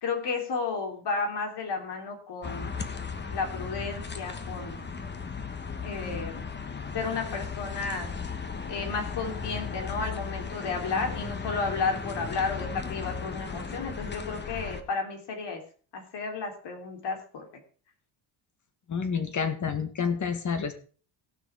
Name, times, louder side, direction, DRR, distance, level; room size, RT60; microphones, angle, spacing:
voice 1, 0.0-2.7 3.3-4.9 5.8-6.5 6.9-8.1 8.7-15.6 15.9-17.6, left 4 dB, 60° left, 3 dB, 3.7 m, -32 dB
sound 1, 2.4-14.8, left 5 dB, 20° left, 1.2 m, -36 dB
voice 2, 18.9-20.7, left 6 dB, 40° left, 8 dB, 1.9 m, -29 dB
17.5 x 6.1 x 4.7 m, 0.41 s
cardioid pair, 125°, 47 cm